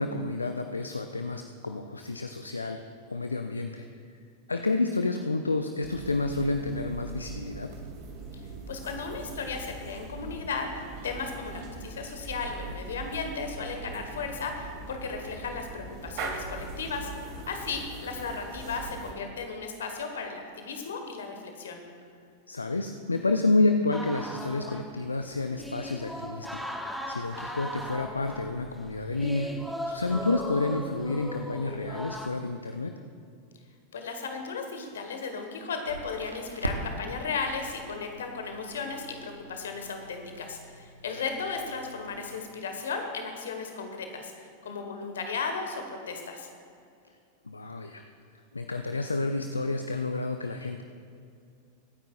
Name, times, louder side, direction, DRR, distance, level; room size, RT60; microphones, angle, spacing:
voice 1, 0.0-2.8 3.1-3.9 4.5-7.8 22.5-26.6 27.1-32.9 47.5-48.0 48.5-50.8, left 2 dB, 80° left, 6 dB, 0.5 m, -29 dB
sound 1, 5.8-19.1, right 3 dB, 45° right, 2.0 m, -41 dB
voice 2, 8.7-17.1 17.5-21.8 33.9-44.3 44.6-46.5, left 4 dB, 65° left, 5 dB, 1.4 m, -35 dB
sound 2, 23.9-32.3, equal, ahead, 0.9 m, -38 dB
Crackle, 35.8-42.4, right 1 dB, 85° right, 1.0 m, -41 dB
24.0 x 9.3 x 2.5 m, 2.4 s
figure-of-eight pair, 90°, 0 cm